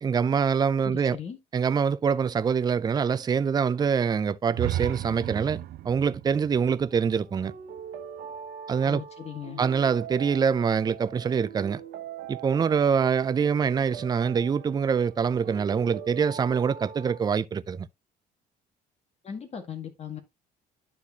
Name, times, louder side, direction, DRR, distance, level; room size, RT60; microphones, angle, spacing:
voice 1, 0.0-1.2 1.5-7.5 8.7-9.0 9.6-11.8 12.3-17.9, right 6 dB, 25° right, 0.4 m, -25 dB
voice 2, 0.9-1.4 8.8-9.6 19.2-20.2, left 8 dB, 40° left, 1.8 m, -38 dB
sound 1, 4.5-8.4, right 13 dB, 65° right, 0.6 m, -35 dB
sound 2, 6.9-17.2, right 8 dB, 85° right, 1.3 m, -42 dB
11.5 x 4.2 x 2.8 m
cardioid pair, 110°, 17 cm